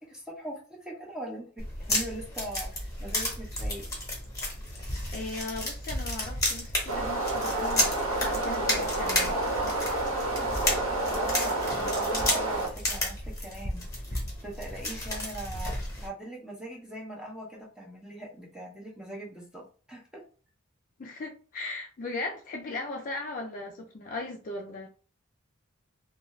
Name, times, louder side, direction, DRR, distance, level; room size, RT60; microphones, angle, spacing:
voice 1, 0.0-3.9 11.1-20.2, right 1 dB, 5° right, 0.6 m, -41 dB
sound 1, 1.6-16.1, left 1 dB, 15° left, 1.0 m, -32 dB
voice 2, 5.1-9.5 21.0-24.9, left 2 dB, 40° left, 0.4 m, -38 dB
sound 2, 6.9-12.7, right 2 dB, 85° right, 1.1 m, -29 dB
2.5 x 2.2 x 3.1 m
head